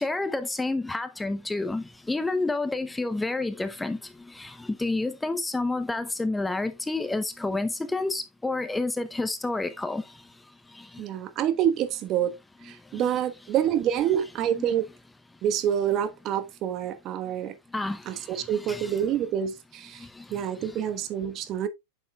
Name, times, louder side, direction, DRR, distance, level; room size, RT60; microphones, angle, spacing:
voice 1, 0.0-10.1 10.7-11.0 12.9-13.1 14.5-14.7 17.7-19.0 20.0-20.8, left 2 dB, 10° left, 0.6 m, -30 dB
voice 2, 11.0-12.3 12.6-14.9 15.4-17.5 18.0-21.7, right 10 dB, 40° right, 1.2 m, -27 dB
8.9 x 6.9 x 2.3 m
hypercardioid pair, 115°, 0 cm